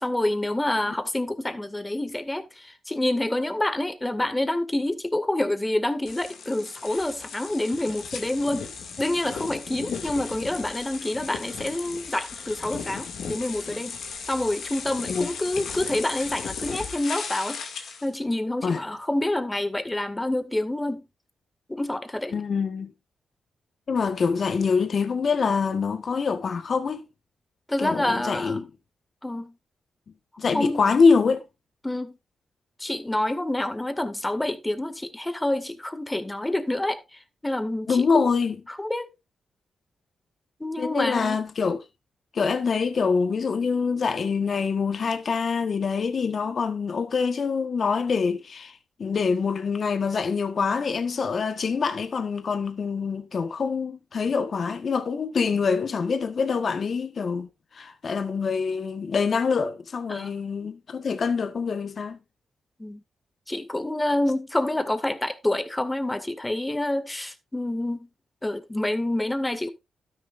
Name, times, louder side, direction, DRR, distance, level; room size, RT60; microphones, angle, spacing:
voice 1, 0.0-8.7 9.0-14.0 14.2-21.0 21.7-22.3 27.7-28.6 29.2-29.5 30.5-30.8 31.8-32.2 32.8-38.3 38.7-39.1 40.6-41.4 60.1-60.3 62.8-63.0 63.5-68.1 68.4-69.7, left 1 dB, 15° left, 2.0 m, -27 dB
sound 1, 6.1-18.1, left 6 dB, 75° left, 2.1 m, -36 dB
voice 2, 22.3-22.9 23.9-27.1 27.8-28.7 30.4-31.4 37.9-38.6 40.8-41.8 42.3-62.2, left 5 dB, 55° left, 1.2 m, -25 dB
12.5 x 10.5 x 2.5 m
supercardioid pair, 50°, 0 cm